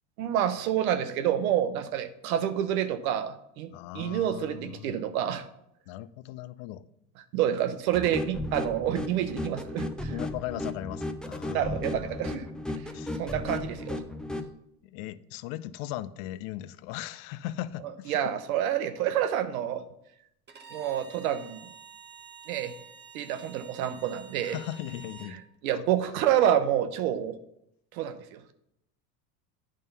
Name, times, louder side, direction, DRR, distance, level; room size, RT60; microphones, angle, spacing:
voice 1, 0.2-5.4 7.3-10.1 11.5-12.5 13.2-14.0 18.1-19.8 20.7-21.7 22.5-22.7 23.1-24.6 25.6-27.4 27.9-28.4, right 10 dB, 85° right, 0.9 m, -28 dB
voice 2, 3.7-5.1 5.9-6.8 10.1-11.8 12.9-13.1 14.8-18.2 24.4-25.4 25.7-25.8, left 14 dB, 75° left, 0.6 m, -38 dB
sound 1, 7.9-14.5, left 1 dB, ahead, 0.5 m, -35 dB
Bowed string instrument, 20.5-25.4, right 6 dB, 25° right, 0.9 m, -49 dB
9.1 x 3.7 x 5.4 m
supercardioid pair, 95°, 41 cm